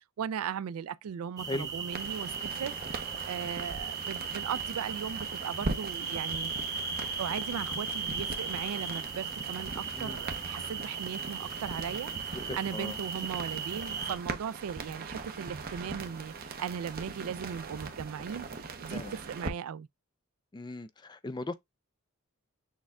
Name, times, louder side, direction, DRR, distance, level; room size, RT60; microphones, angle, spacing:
voice 1, 0.0-6.5 7.2-19.9, right 8 dB, 75° right, 0.3 m, -38 dB
sound 1, 1.4-14.1, right 5 dB, 15° right, 0.9 m, -37 dB
sound 2, 1.9-19.5, right 3 dB, 40° right, 0.7 m, -41 dB
voice 2, 12.5-13.0 18.9-19.1 20.5-21.5, left 2 dB, 20° left, 0.3 m, -38 dB
6.4 x 2.2 x 3.5 m
head